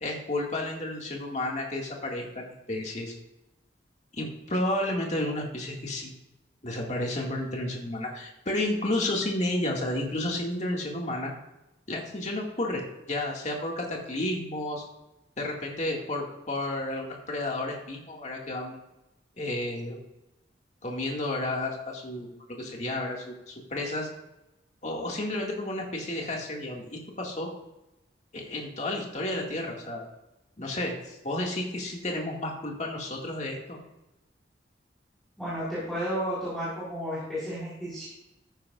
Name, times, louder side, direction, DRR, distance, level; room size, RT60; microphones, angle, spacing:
voice 1, 0.0-3.1 4.1-6.1 6.6-11.3 11.9-14.8 15.4-18.8 19.4-20.0 20.8-24.1 24.8-27.5 28.3-30.0 30.6-33.8, left 1 dB, 40° left, 0 dB, 2.0 m, -31 dB
voice 2, 35.4-38.0, equal, ahead, -11 dB, 4.2 m, -32 dB
13.5 x 10.0 x 2.5 m, 0.92 s
head